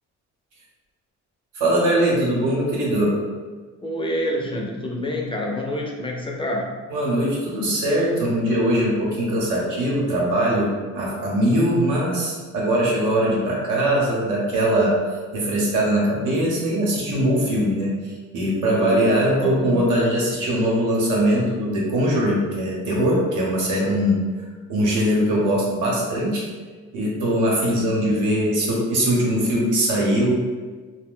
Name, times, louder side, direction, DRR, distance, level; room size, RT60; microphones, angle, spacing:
voice 1, 1.5-3.2 6.9-15.0 15.3-24.2 24.7-26.4 26.9-30.4, right 1 dB, 90° right, -4 dB, 0.9 m, -21 dB
voice 2, 3.8-6.7 18.7-19.8 27.8-28.1, left 1 dB, 20° left, -1 dB, 0.4 m, -28 dB
2.5 x 2.1 x 3.6 m, 1.4 s
cardioid pair, 90°, 30 cm